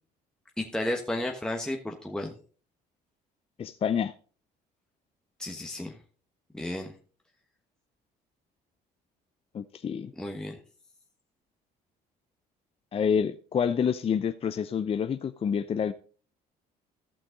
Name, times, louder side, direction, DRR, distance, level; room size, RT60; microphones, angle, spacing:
voice 1, 0.6-2.3 5.4-6.0 6.5-6.9 10.2-10.6, left 1 dB, 5° left, 1.2 m, -33 dB
voice 2, 3.6-4.1 9.5-10.1 12.9-15.9, left 7 dB, 35° left, 0.5 m, -28 dB
14.0 x 5.9 x 3.8 m
supercardioid pair, 85°, 18 cm